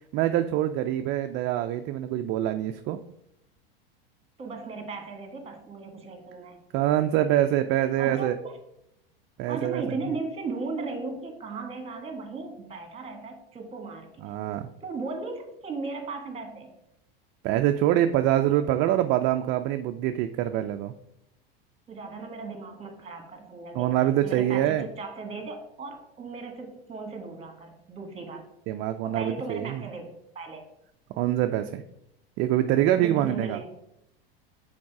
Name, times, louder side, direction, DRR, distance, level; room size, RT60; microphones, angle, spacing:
voice 1, 0.1-3.0 6.7-8.3 9.4-10.0 14.2-14.7 17.4-20.9 23.7-24.9 28.7-29.8 31.2-31.8 32.4-33.6, right 12 dB, 40° right, 7 dB, 0.4 m, -25 dB
voice 2, 4.4-6.7 8.0-8.5 9.5-14.3 14.8-16.7 21.9-24.0 24.2-28.4 29.0-30.6 33.0-33.7, right 3 dB, 20° right, 5 dB, 1.5 m, -37 dB
6.1 x 4.0 x 4.7 m, 0.80 s
supercardioid pair, 120°, 29 cm